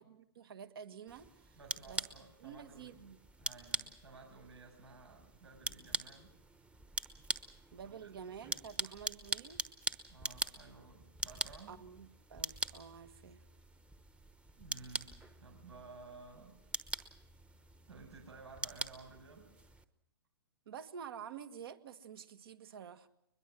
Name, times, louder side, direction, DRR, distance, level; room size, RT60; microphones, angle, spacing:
voice 1, 0.0-1.6 1.9-2.0 2.4-3.2 7.7-9.6 11.7-13.4 20.7-23.1, right 7 dB, 60° right, 9 dB, 1.8 m, -49 dB
sound 1, 1.1-19.9, right 2 dB, 10° right, 1.0 m, -43 dB
voice 2, 1.5-3.0 3.4-6.3 7.4-8.1 10.1-11.8 14.6-16.6 17.9-19.5, right 3 dB, 85° right, 3 dB, 6.8 m, -55 dB
22.0 x 21.5 x 6.3 m, 0.82 s
hypercardioid pair, 135°, 14 cm